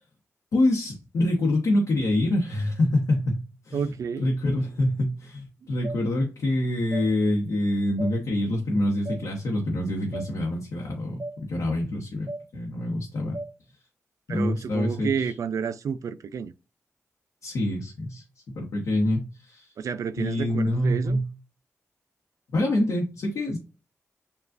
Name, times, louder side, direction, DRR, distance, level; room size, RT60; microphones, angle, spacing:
voice 1, 0.5-13.4 14.3-15.3 17.4-19.7 20.2-21.3 22.5-23.6, left 1 dB, 90° left, 0.9 m, -26 dB
voice 2, 3.7-4.3 14.3-16.5 19.8-21.2, right 6 dB, 85° right, 0.3 m, -30 dB
sound 1, 5.8-6.0 6.9-7.1 8.0-8.1 9.0-9.2 10.1-10.3 11.2-11.4 12.3-12.4 13.3-13.5, right 1 dB, 15° right, 1.3 m, -34 dB
7.1 x 2.4 x 2.4 m
cardioid pair, 60°, 5 cm